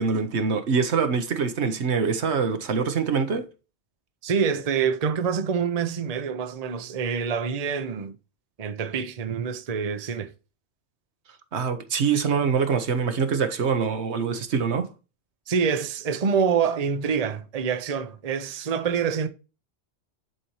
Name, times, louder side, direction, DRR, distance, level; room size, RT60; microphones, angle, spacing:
voice 1, 0.0-3.5 11.5-14.9, right 5 dB, 75° right, 1.2 m, -24 dB
voice 2, 4.2-8.1 8.6-10.3 15.5-19.3, right 6 dB, 40° right, 0.7 m, -26 dB
10.5 x 4.3 x 3.1 m
omnidirectional pair, 1.2 m